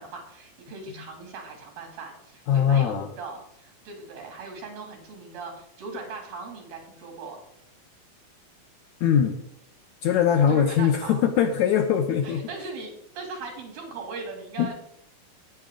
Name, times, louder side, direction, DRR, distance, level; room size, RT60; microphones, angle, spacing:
voice 1, 0.0-7.4 10.5-11.2 12.2-14.7, right 4 dB, 80° right, 2 dB, 4.3 m, -39 dB
voice 2, 2.5-3.1 9.0-9.4 10.0-12.4 14.6-14.7, left 8 dB, 70° left, 5 dB, 1.9 m, -21 dB
14.0 x 9.8 x 3.7 m, 0.75 s
omnidirectional pair, 4.1 m